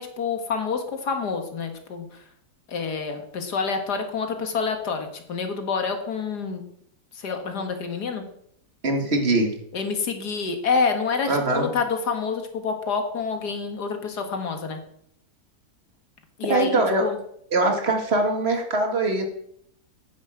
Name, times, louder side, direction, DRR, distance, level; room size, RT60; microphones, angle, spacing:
voice 1, 0.0-2.2 2.7-6.6 7.1-8.2 9.7-14.8 16.4-17.2, left 5 dB, 75° left, 6 dB, 2.1 m, -27 dB
voice 2, 8.8-9.5 11.3-11.7 16.5-17.0 17.5-19.2, right 2 dB, 40° right, 4 dB, 2.1 m, -22 dB
9.6 x 7.4 x 7.6 m, 0.70 s
omnidirectional pair, 1.8 m